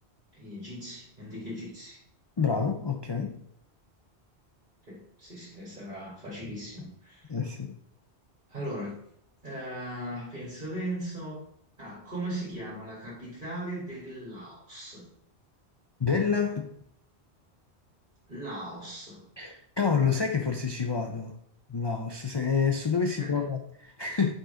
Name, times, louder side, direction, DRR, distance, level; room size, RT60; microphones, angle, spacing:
voice 1, 0.3-2.0 4.9-7.3 8.5-9.0 9.4-11.5 11.8-15.1 18.3-19.2 23.2-23.4, right 1 dB, 45° right, -6 dB, 2.3 m, -38 dB
voice 2, 2.4-3.4 7.3-7.8 16.0-16.6 19.4-21.3 21.7-24.3, left 6 dB, 35° left, 3 dB, 0.4 m, -28 dB
5.1 x 3.8 x 5.0 m, 0.70 s
omnidirectional pair, 1.1 m